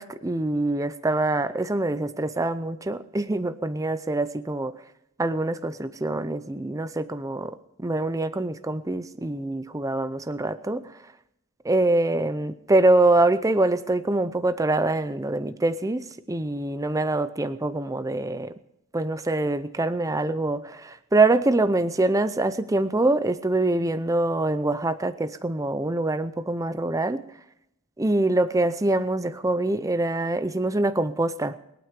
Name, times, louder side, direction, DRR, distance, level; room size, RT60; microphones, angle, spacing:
voice 1, 0.0-4.7 5.2-10.9 11.6-18.5 18.9-27.3 28.0-31.6, right 2 dB, 15° right, 11 dB, 0.6 m, -24 dB
21.5 x 9.1 x 5.2 m, 0.82 s
head